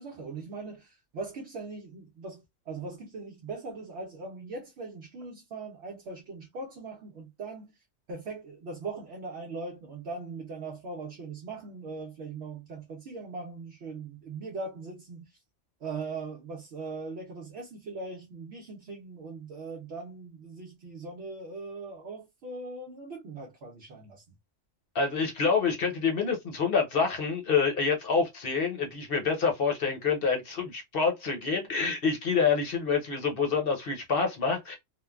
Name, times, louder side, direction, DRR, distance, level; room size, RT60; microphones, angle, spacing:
voice 1, 0.0-7.8 8.1-15.3 15.8-24.2, right 3 dB, 65° right, 0.8 m, -40 dB
voice 2, 24.9-34.8, left 5 dB, 55° left, 0.9 m, -27 dB
3.1 x 2.1 x 2.3 m
omnidirectional pair, 1.3 m